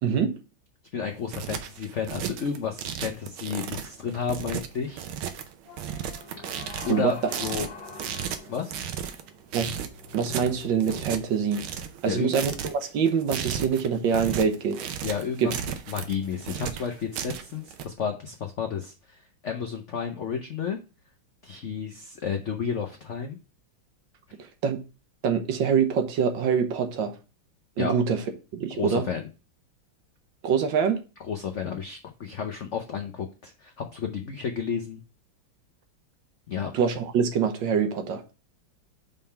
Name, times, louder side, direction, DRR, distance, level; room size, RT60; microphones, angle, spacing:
voice 1, 0.0-0.4 6.9-7.1 9.5-9.8 10.1-11.6 12.0-14.9 15.4-15.5 24.4-24.8 25.2-27.1 27.8-28.2 28.5-29.0 30.4-31.0 36.7-38.2, right 6 dB, 70° right, 1.5 m, -25 dB
voice 2, 0.9-5.0 6.4-6.5 6.9-7.7 8.5-8.7 12.1-12.4 15.0-15.5 15.9-20.8 21.4-23.4 27.8-27.9 28.8-29.3 31.3-35.0 36.5-36.7, left 6 dB, 85° left, 0.6 m, -32 dB
sound 1, 1.1-17.8, right 9 dB, 85° right, 1.6 m, -35 dB
sound 2, 5.7-11.7, left 4 dB, 60° left, 1.5 m, -45 dB
5.4 x 3.6 x 5.6 m
omnidirectional pair, 2.2 m